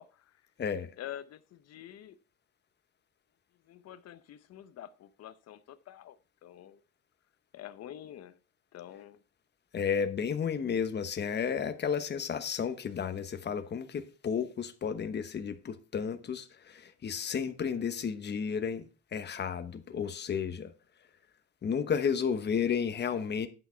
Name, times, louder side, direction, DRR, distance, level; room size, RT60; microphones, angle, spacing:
voice 1, 0.0-0.4 1.0-2.2 3.7-6.8 7.5-8.4 8.7-9.2, left 11 dB, 55° left, 0.9 m, -47 dB
voice 2, 0.6-0.9 9.7-18.8 19.1-20.7 21.6-23.5, left 7 dB, 35° left, 1.1 m, -32 dB
11.0 x 6.0 x 4.5 m
cardioid pair, 135°, 30 cm